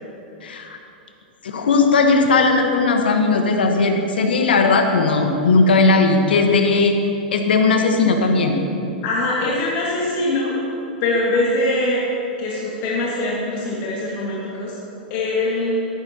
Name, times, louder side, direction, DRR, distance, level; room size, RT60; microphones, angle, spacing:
voice 1, 0.4-0.8 1.4-6.9 7.3-8.6, left 3 dB, 80° left, 4 dB, 1.2 m, -17 dB
voice 2, 9.0-10.6 11.0-12.0 12.4-14.8 15.1-15.9, left 2 dB, 50° left, -5 dB, 1.9 m, -22 dB
13.0 x 11.0 x 2.9 m, 2.8 s
hypercardioid pair, 110°, 5 cm